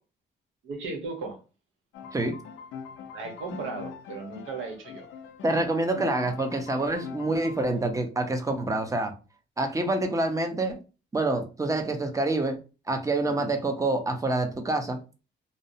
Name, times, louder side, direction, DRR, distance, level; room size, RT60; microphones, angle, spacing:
voice 1, 0.6-1.4 3.1-5.1 13.2-13.5, right 4 dB, 80° right, 1.0 m, -36 dB
sound 1, 1.9-7.9, left 7 dB, 80° left, 0.4 m, -42 dB
voice 2, 5.4-9.1 9.6-10.8 11.1-12.6 12.9-15.0, right 2 dB, 15° right, 0.6 m, -27 dB
2.6 x 2.0 x 2.6 m
cardioid pair, 90°, 20 cm